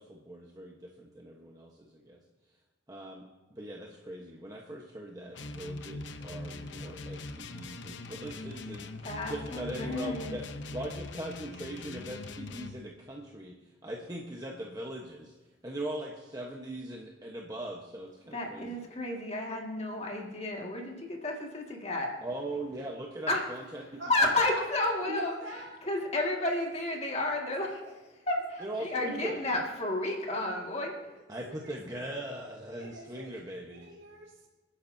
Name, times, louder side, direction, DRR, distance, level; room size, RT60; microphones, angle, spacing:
voice 1, 0.0-2.2 2.9-10.4 10.7-13.6 13.8-15.3 15.6-18.8 22.2-24.4 28.6-29.4 31.3-33.9, right 1 dB, 20° right, -1 dB, 1.1 m, -40 dB
sound 1, 5.3-12.8, left 2 dB, 70° left, 0.8 m, -42 dB
voice 2, 9.0-10.4 18.3-22.1 23.3-23.4 24.1-25.3 25.9-27.7 28.3-30.9, left 2 dB, 35° left, 0 dB, 2.0 m, -31 dB
voice 3, 24.0-24.4 25.1-25.8 26.6-26.7 26.9-28.0 28.6-28.7 31.5-31.8 32.8-33.3 33.7-34.5, equal, 80° right, -2 dB, 3.8 m, -43 dB
27.0 x 10.0 x 2.7 m, 1.3 s
head